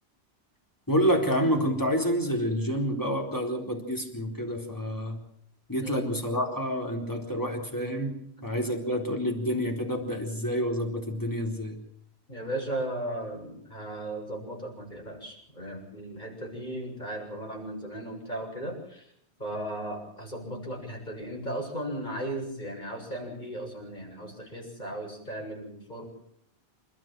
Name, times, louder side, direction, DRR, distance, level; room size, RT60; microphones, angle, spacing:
voice 1, 0.9-5.2 5.7-11.8, equal, 15° left, 2 dB, 4.1 m, -28 dB
voice 2, 12.3-19.1 19.4-26.0, right 1 dB, 45° left, 0 dB, 7.7 m, -36 dB
28.5 x 13.5 x 7.7 m, 0.69 s
omnidirectional pair, 1.1 m